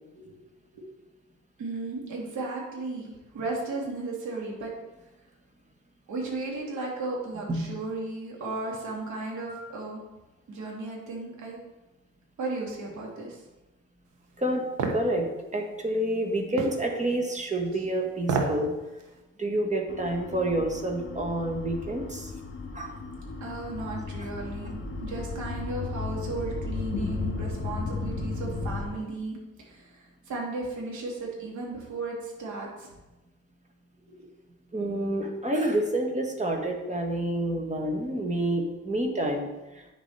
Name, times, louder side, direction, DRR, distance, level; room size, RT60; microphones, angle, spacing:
voice 1, 1.6-4.7 6.1-10.0 10.5-11.6 12.4-13.4 17.8-17.9 23.4-32.9 34.1-34.3 36.8-36.9 39.3-39.4, right 2 dB, 70° right, -2 dB, 3.2 m, -35 dB
sound 1, 14.8-15.0 16.6-16.8 18.2-18.6 19.0-19.1, right 4 dB, 90° right, 1.4 m, -27 dB
voice 2, 14.9-18.7 19.4-22.3 22.7-23.0 34.7-39.8, right 1 dB, 25° right, 2 dB, 1.9 m, -28 dB
sound 2, 19.9-28.9, left 3 dB, 40° left, 2.4 m, -35 dB
9.3 x 7.2 x 4.5 m, 1.0 s
cardioid pair, 90°, 30 cm